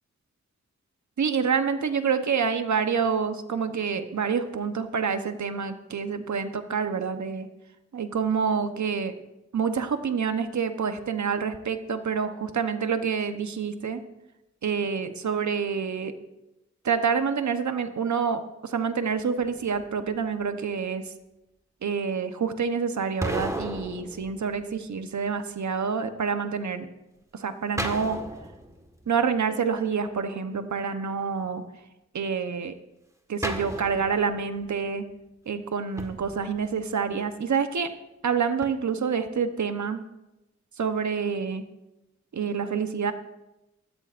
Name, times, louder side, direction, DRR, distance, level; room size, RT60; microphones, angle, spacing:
voice 1, 1.2-7.5 7.9-9.1 9.5-14.0 14.6-16.1 16.8-21.1 21.8-26.9 27.3-28.2 29.1-31.6 32.1-32.7 33.3-35.0 35.5-37.9 38.2-40.0 40.8-41.6 42.3-43.1, right 6 dB, 75° right, 9 dB, 1.0 m, -27 dB
sound 1, 19.4-20.2 23.2-25.1 27.8-29.3 33.4-34.8 36.0-37.1 38.6-38.7, equal, 10° right, 1.6 m, -35 dB
20.0 x 13.5 x 2.6 m, 0.95 s
cardioid pair, 55°, 29 cm